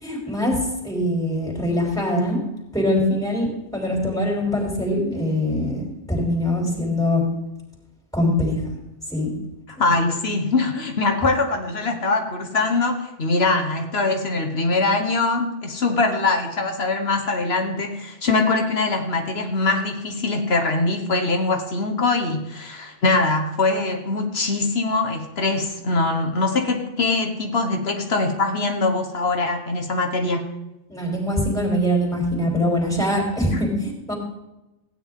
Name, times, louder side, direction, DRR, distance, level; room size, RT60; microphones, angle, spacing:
voice 1, 0.0-2.4 2.7-7.3 8.1-8.6 9.1-9.3 9.8-9.9 30.9-34.1, left 1 dB, 5° left, -1 dB, 3.5 m, -23 dB
voice 2, 9.8-30.5, left 3 dB, 65° left, 5 dB, 1.5 m, -22 dB
16.0 x 9.7 x 3.7 m, 0.98 s
omnidirectional pair, 1.1 m